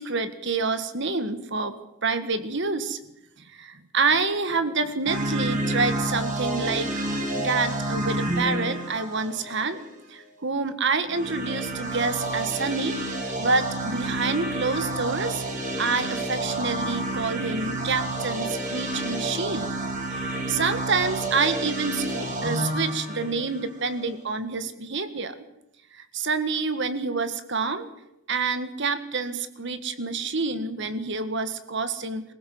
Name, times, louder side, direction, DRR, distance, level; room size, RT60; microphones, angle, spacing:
voice 1, 0.0-1.7 2.0-3.0 3.4-6.9 7.4-9.8 10.1-13.0 13.4-25.3 25.9-27.9 28.3-32.2, right 4 dB, 55° right, 11 dB, 1.7 m, -27 dB
sound 1, 5.1-9.9 11.0-24.1, right 1 dB, 35° right, 4.3 m, -29 dB
23.5 x 16.0 x 7.9 m, 0.86 s
head